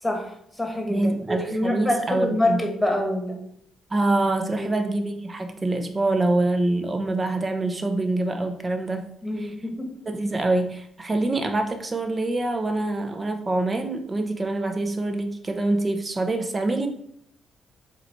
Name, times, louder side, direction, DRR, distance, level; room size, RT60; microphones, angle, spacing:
voice 1, 0.0-3.4 4.6-4.7 9.2-9.9, left 1 dB, 5° left, 1 dB, 1.6 m, -26 dB
voice 2, 0.9-2.6 3.9-9.1 9.4-9.5 10.1-16.9, right 2 dB, 25° right, 5 dB, 1.0 m, -25 dB
7.3 x 2.9 x 4.6 m, 0.72 s
cardioid pair, 90°, 0 cm